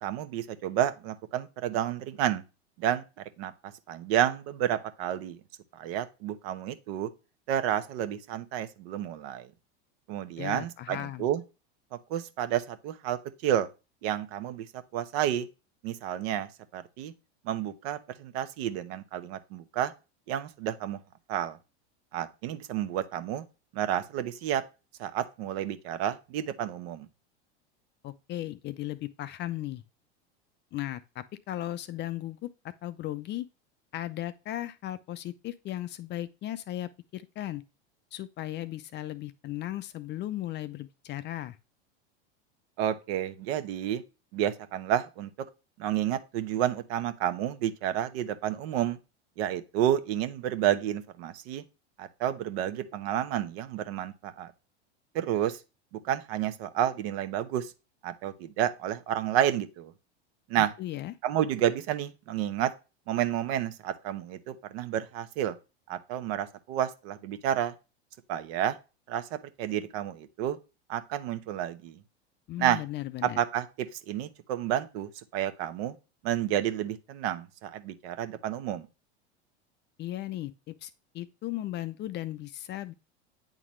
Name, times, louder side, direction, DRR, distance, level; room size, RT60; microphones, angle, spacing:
voice 1, 0.0-2.4 2.8-3.0 3.4-3.5 3.9-5.4 5.7-7.1 7.5-9.5 10.1-11.4 11.9-13.7 14.0-14.7 14.9-15.5 15.8-17.1 17.4-19.9 20.3-21.0 21.3-21.6 22.1-23.4 23.7-24.6 25.0-27.1 42.8-44.0 44.3-45.3 45.8-49.0 49.4-51.6 52.0-54.5 55.1-55.6 56.0-57.7 58.0-59.9 60.5-60.7 61.2-62.7 63.1-65.6 65.9-67.7 68.3-68.8 69.1-70.6 70.9-72.0 72.6-72.8 73.4-76.0 76.2-78.8, right 11 dB, 60° right, 1.0 m, -30 dB
voice 2, 10.4-11.3 28.0-29.8 30.7-33.5 33.9-37.6 38.1-41.6 60.6-61.1 72.5-73.4 80.0-82.9, left 14 dB, 30° left, 0.5 m, -36 dB
8.9 x 4.0 x 3.1 m
hypercardioid pair, 105°, 34 cm